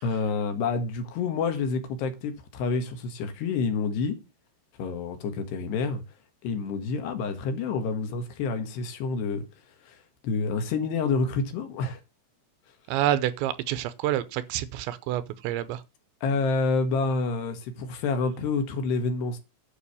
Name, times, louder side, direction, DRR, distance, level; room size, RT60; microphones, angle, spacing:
voice 1, 0.0-4.2 4.8-6.0 6.4-9.4 9.9-10.0 10.2-12.0 16.2-19.4, left 4 dB, 70° left, 3.6 m, -28 dB
voice 2, 12.9-15.8, right 12 dB, 80° right, 3.0 m, -28 dB
9.9 x 6.1 x 6.9 m
omnidirectional pair, 5.2 m